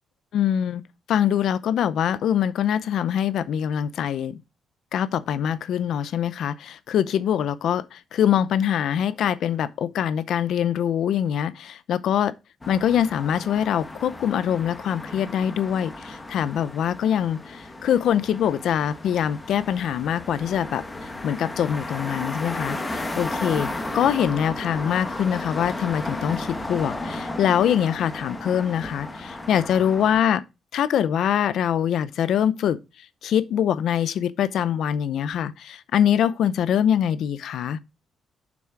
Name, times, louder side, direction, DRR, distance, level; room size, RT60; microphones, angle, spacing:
voice 1, 0.3-0.8 1.1-4.4 4.9-12.3 12.7-20.8 21.2-23.7 23.9-30.4 30.7-32.8 33.2-37.8, left 9 dB, 65° left, 0.6 m, -23 dB
sound 1, 12.6-30.2, left 2 dB, 15° left, 1.0 m, -34 dB
7.4 x 6.1 x 4.6 m
cardioid pair, 170°, 0 cm